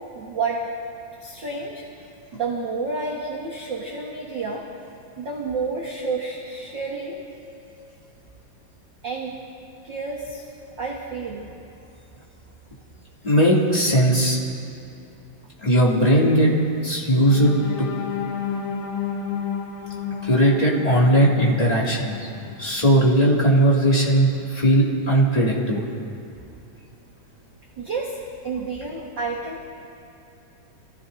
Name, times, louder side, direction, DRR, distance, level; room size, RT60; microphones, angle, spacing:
voice 1, 0.1-0.6 1.2-1.8 2.3-4.7 5.2-7.2 9.0-9.4 9.8-10.5 10.8-11.5 27.8-28.2 28.4-29.7, right 4 dB, 45° right, -4 dB, 1.7 m, -30 dB
voice 2, 13.2-14.4 15.6-16.5 16.8-17.5 17.8-17.9 20.2-22.3 22.6-25.9, right 1 dB, 10° left, -6 dB, 2.4 m, -18 dB
sound 1, 17.3-23.2 23.7-23.8 24.2-24.4, left 7 dB, 60° left, 2.4 m, -32 dB
29.0 x 16.5 x 2.8 m, 2.8 s
omnidirectional pair, 3.9 m